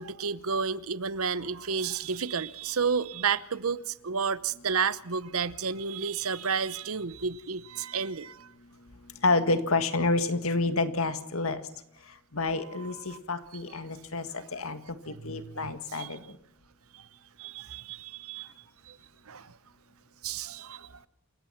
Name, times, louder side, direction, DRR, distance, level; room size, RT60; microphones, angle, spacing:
voice 1, 0.0-8.5 12.7-13.2 14.3-14.4 15.1-16.2 16.9-17.0 17.4-18.5 18.9-19.0 19.3-19.5 20.2-20.9, right 5 dB, 70° right, 0.9 m, -32 dB
voice 2, 9.2-11.6 12.3-16.2, left 3 dB, 70° left, 1.9 m, -29 dB
28.5 x 15.5 x 5.9 m
head